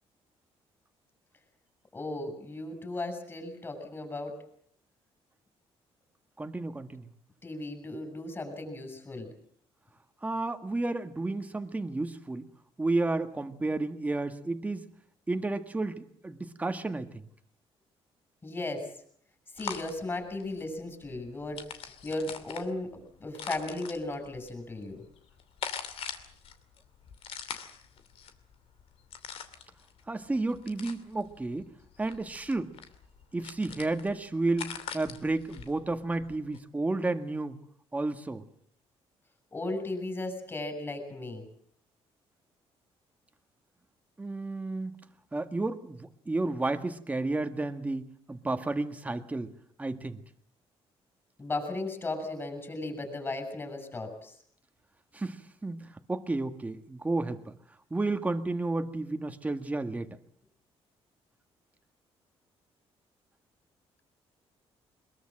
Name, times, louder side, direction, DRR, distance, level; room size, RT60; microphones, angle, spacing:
voice 1, 1.9-4.3 7.4-9.3 18.4-18.9 19.5-21.7 22.0-25.0 39.5-41.5 51.4-54.4, left 2 dB, 20° left, 5 dB, 7.1 m, -36 dB
voice 2, 6.4-7.1 10.2-12.5 12.8-14.9 15.3-17.2 30.1-31.7 32.0-32.7 33.3-37.6 37.9-38.4 44.2-45.0 45.3-49.5 49.8-50.2 55.1-57.6 57.9-60.2, right 2 dB, 15° right, 7 dB, 1.8 m, -32 dB
sound 1, 19.6-36.6, left 7 dB, 65° left, 2.7 m, -43 dB
23.0 x 22.0 x 7.6 m, 0.63 s
cardioid pair, 130°, 11 cm